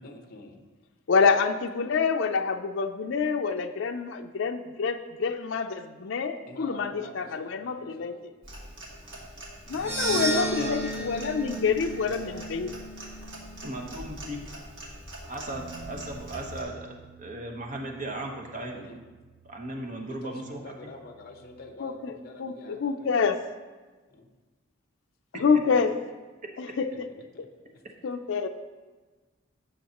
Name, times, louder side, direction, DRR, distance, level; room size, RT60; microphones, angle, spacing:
voice 1, 0.0-0.6 6.5-8.2 12.0-12.8 18.7-19.0 20.1-23.2 24.1-24.3 27.3-27.8, left 2 dB, 50° left, 5 dB, 1.0 m, -47 dB
voice 2, 1.1-8.1 9.7-12.7 21.8-22.1 22.4-23.4 25.4-25.9 26.6-27.1 27.4-27.5 28.0-28.5, left 5 dB, 70° left, 6 dB, 0.5 m, -27 dB
Clock, 8.4-16.6, right 1 dB, 65° right, 2.0 m, -44 dB
sound 1, 9.7-14.0, right 1 dB, 15° right, 1.2 m, -34 dB
voice 3, 10.1-10.8 13.6-14.4 15.3-18.9 19.4-20.6 25.3-25.4, right 2 dB, 40° right, 1 dB, 1.1 m, -36 dB
sound 2, 15.5-21.7, right 6 dB, 85° right, 0.6 m, -51 dB
15.5 x 6.4 x 2.9 m, 1.3 s
head